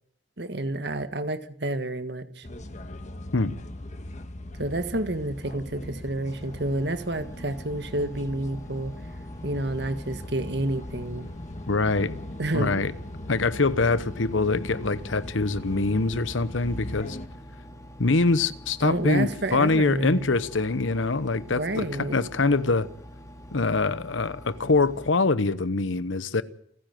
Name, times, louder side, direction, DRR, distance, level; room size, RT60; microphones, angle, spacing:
voice 1, 0.4-2.5 4.6-8.9 9.4-11.3 12.4-12.8 18.8-20.3 21.5-22.3, right 1 dB, 60° right, 1.6 m, -29 dB
sound 1, 2.4-17.3, left 1 dB, 40° left, 1.6 m, -40 dB
Engine, 6.2-25.1, equal, 15° left, 2.5 m, -46 dB
voice 2, 11.7-12.1 12.5-12.9 13.3-17.2 18.0-22.9 23.5-26.4, left 3 dB, 90° left, 1.0 m, -24 dB
29.0 x 10.0 x 9.3 m
head